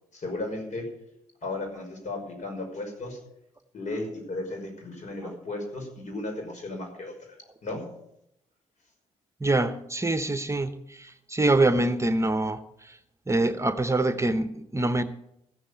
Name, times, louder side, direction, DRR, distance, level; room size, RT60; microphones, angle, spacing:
voice 1, 0.1-0.9 1.4-3.2 3.7-7.1 7.6-7.8, left 2 dB, 60° left, 3 dB, 5.5 m, -35 dB
voice 2, 9.4-13.0 13.3-15.0, right 2 dB, 20° right, 11 dB, 1.0 m, -25 dB
15.0 x 7.4 x 8.5 m, 0.80 s
supercardioid pair, 55°, 14 cm